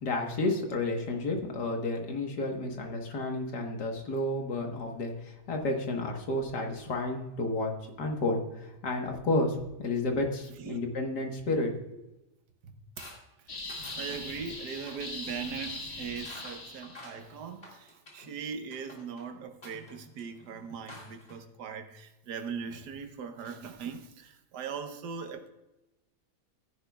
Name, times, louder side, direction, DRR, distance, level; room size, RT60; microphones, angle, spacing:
voice 1, 0.0-7.7 8.0-11.8, left 2 dB, 75° left, 2.0 m, -31 dB
sound 1, 13.0-13.2 13.7-14.1 14.7-15.0 16.2-18.3 18.7-19.2 19.6-21.3, left 1 dB, 35° left, 2.4 m, -50 dB
sound 2, 13.5-17.2, left 2 dB, 55° left, 2.1 m, -41 dB
voice 2, 13.8-25.5, right 6 dB, 75° right, 1.5 m, -40 dB
14.5 x 10.5 x 2.3 m
omnidirectional pair, 1.8 m